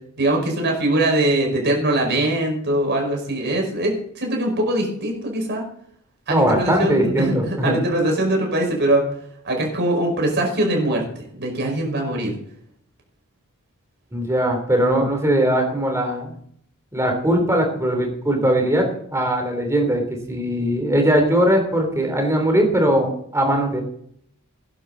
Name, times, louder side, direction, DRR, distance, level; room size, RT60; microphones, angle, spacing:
voice 1, 0.2-5.6 6.3-9.1 9.4-12.3, right 1 dB, 50° right, 1 dB, 5.3 m, -22 dB
voice 2, 6.3-7.8 14.1-16.3 16.9-18.9 19.1-20.0 20.3-23.8, right 1 dB, 15° right, 3 dB, 3.4 m, -20 dB
16.5 x 11.5 x 4.1 m, 0.67 s
head